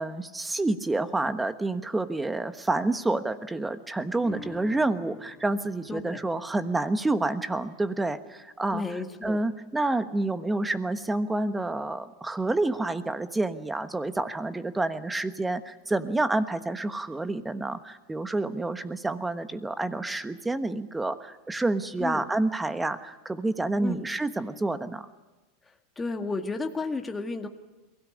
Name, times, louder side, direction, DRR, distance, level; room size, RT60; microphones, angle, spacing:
voice 1, 0.0-8.8 9.2-25.1, right 2 dB, 10° right, 10 dB, 1.2 m, -28 dB
sound 1, 4.2-10.9 11.4-11.5, left 6 dB, 40° left, 3.6 m, -52 dB
voice 2, 5.9-6.2 8.7-9.4 22.0-22.2 23.8-24.0 26.0-27.5, left 3 dB, 15° left, 4 dB, 1.8 m, -32 dB
22.5 x 16.5 x 9.8 m, 1.1 s
supercardioid pair, 120°, 0 cm